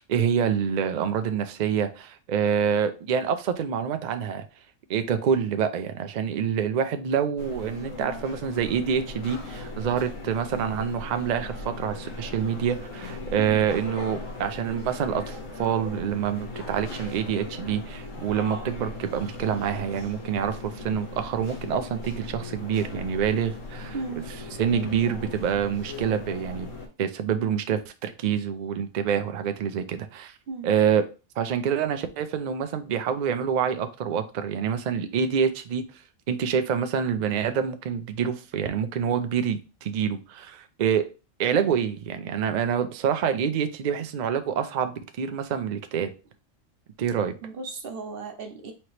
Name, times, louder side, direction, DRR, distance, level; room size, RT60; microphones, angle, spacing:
voice 1, 0.0-4.4 4.9-23.9 24.6-26.7 27.0-30.3 30.6-31.0 31.4-35.9 36.3-41.1 41.4-46.1 47.0-47.3, right 7 dB, 75° right, 0.4 m, -26 dB
sound 1, 7.4-26.9, left 2 dB, 75° left, 1.4 m, -38 dB
voice 2, 23.9-24.3 30.5-30.7 47.4-48.7, right 4 dB, 55° right, 0.8 m, -35 dB
4.4 x 2.9 x 3.1 m
omnidirectional pair, 1.4 m